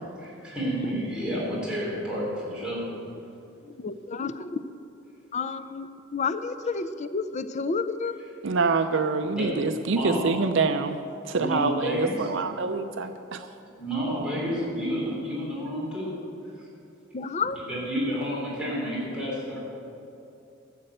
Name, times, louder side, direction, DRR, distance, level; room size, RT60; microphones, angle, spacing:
voice 1, 0.2-2.8 9.3-10.2 11.3-12.3 13.8-16.1 16.5-16.7 17.7-19.6, equal, 5° right, -7 dB, 3.8 m, -30 dB
voice 2, 3.6-4.6 5.3-8.2 17.1-17.6, left 4 dB, 35° left, 11 dB, 0.5 m, -30 dB
voice 3, 8.4-11.0 11.2-13.5, right 4 dB, 60° right, 8 dB, 0.5 m, -26 dB
14.0 x 7.6 x 7.9 m, 2.7 s
head